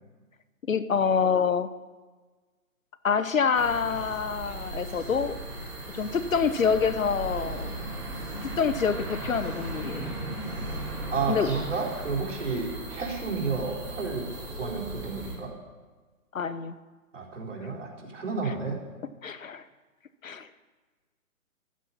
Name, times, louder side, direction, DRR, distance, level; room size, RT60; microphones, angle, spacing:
voice 1, 0.7-1.7 3.0-5.3 5.9-7.7 8.4-10.1 11.3-11.5 16.3-16.7 18.4-18.5 19.2-19.6 20.2-20.5, left 6 dB, 65° left, 13 dB, 0.9 m, -26 dB
sound 1, 3.5-15.3, right 2 dB, 5° right, 3.2 m, -37 dB
voice 2, 11.1-15.5 17.1-18.8, right 4 dB, 55° right, -2 dB, 4.2 m, -31 dB
15.0 x 12.5 x 5.7 m, 1.3 s
hypercardioid pair, 180°, 44 cm